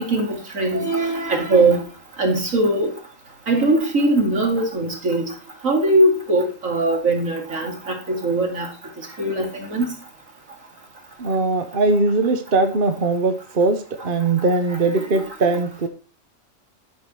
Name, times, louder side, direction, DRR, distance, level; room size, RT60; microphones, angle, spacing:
voice 1, 0.0-1.8 2.2-2.9 3.5-5.3 5.6-8.7 9.2-9.9 14.9-15.3, right 2 dB, 80° right, 1 dB, 2.9 m, -20 dB
voice 2, 11.2-15.9, right 3 dB, 45° right, 7 dB, 1.1 m, -20 dB
11.5 x 4.9 x 6.2 m, 0.35 s
omnidirectional pair, 1.3 m